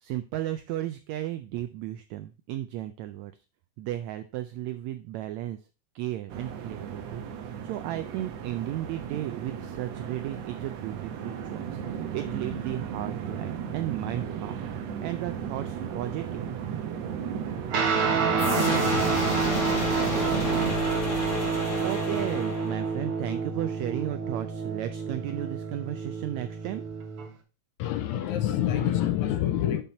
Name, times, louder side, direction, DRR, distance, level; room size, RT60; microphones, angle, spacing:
voice 1, 0.0-3.3 3.8-5.6 5.9-7.2 7.6-14.7 15.0-16.4 21.8-26.8, right 13 dB, 85° right, 10 dB, 1.6 m, -34 dB
sound 1, 6.3-20.7, right 8 dB, 70° right, 1.8 m, -35 dB
Guitar, 17.7-27.3, right 5 dB, 50° right, 2.0 m, -29 dB
sound 2, 18.4-23.0, left 3 dB, 50° left, 3.4 m, -32 dB
voice 2, 18.7-19.1 27.8-29.8, left 11 dB, 75° left, 9 dB, 1.9 m, -28 dB
7.3 x 5.4 x 4.2 m, 0.33 s
omnidirectional pair, 3.7 m